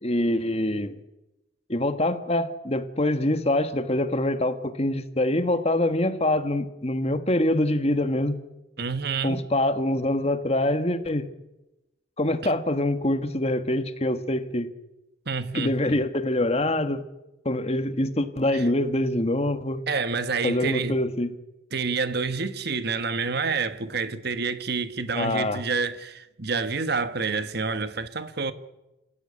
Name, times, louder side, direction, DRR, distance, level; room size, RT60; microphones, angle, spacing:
voice 1, 0.0-1.0 1.7-8.4 9.2-11.3 12.2-14.7 15.5-17.0 17.4-19.8 20.4-21.3 25.1-25.6, left 1 dB, 30° left, 1.5 m, -25 dB
voice 2, 8.8-9.4 15.3-16.0 18.5-18.7 19.9-21.0 21.7-28.5, right 4 dB, 55° right, 1.4 m, -28 dB
27.5 x 15.5 x 9.9 m
head